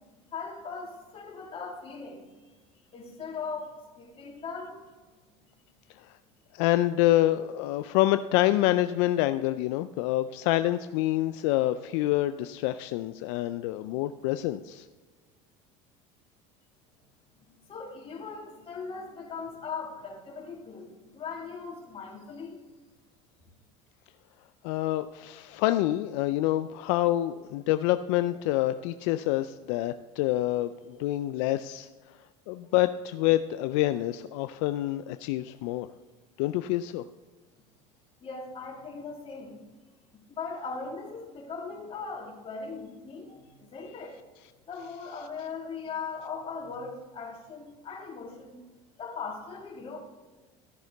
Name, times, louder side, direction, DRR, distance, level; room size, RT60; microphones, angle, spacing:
voice 1, 0.3-2.5 2.9-4.8 17.7-22.6 38.2-39.6 40.3-44.1 44.7-48.6 49.0-50.0, left 5 dB, 40° left, -2 dB, 3.1 m, -39 dB
voice 2, 6.5-14.9 24.6-31.9 32.5-35.9 36.4-37.0, left 15 dB, 80° left, 11 dB, 0.4 m, -27 dB
13.5 x 6.4 x 4.0 m, 1.3 s
supercardioid pair, 95°, 15 cm